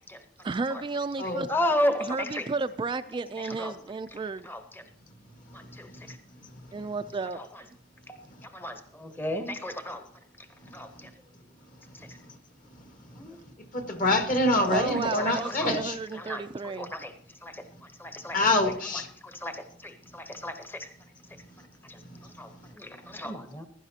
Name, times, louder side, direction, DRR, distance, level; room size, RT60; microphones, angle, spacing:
voice 1, 0.4-1.5 2.0-4.5 6.7-7.4 14.6-16.9, right 3 dB, 25° right, 9 dB, 0.3 m, -32 dB
voice 2, 1.5-2.5 3.6-3.7 4.4-4.8 5.5-6.2 7.4-7.5 8.1-10.0 10.4-10.5 10.7-11.1 11.9-12.2 13.1-13.4 15.2-15.8 16.2-16.4 16.8-17.1 17.4-18.4 18.9-20.9 21.8-23.7, left 1 dB, 10° left, 7 dB, 0.8 m, -34 dB
voice 3, 13.7-16.0 18.3-19.1, left 2 dB, 45° left, 6 dB, 1.5 m, -25 dB
15.5 x 11.5 x 2.8 m, 0.63 s
head